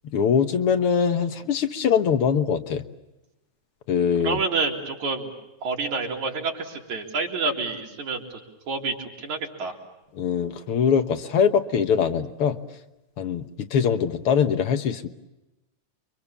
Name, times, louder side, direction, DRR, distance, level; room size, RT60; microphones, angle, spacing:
voice 1, 0.1-2.8 3.9-4.4 10.2-12.6 13.2-15.1, left 7 dB, 55° left, 8 dB, 1.8 m, -22 dB
voice 2, 4.2-5.3 5.6-8.2 8.7-9.7, right 4 dB, 75° right, 0 dB, 5.0 m, -28 dB
29.5 x 25.0 x 7.1 m, 0.98 s
omnidirectional pair, 3.3 m